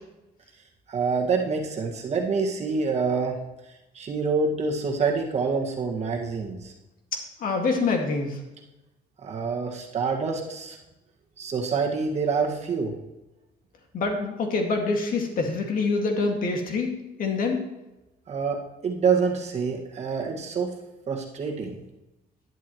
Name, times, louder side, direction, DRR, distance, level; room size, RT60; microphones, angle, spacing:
voice 1, 0.9-3.4 3.9-6.7 9.2-10.8 11.4-12.9 18.3-20.7 21.1-21.8, right 5 dB, 40° right, 0 dB, 1.8 m, -26 dB
voice 2, 7.4-8.4 13.9-17.6, left 3 dB, 55° left, 2 dB, 2.1 m, -26 dB
11.0 x 11.0 x 3.1 m, 0.99 s
cardioid pair, 110°, 17 cm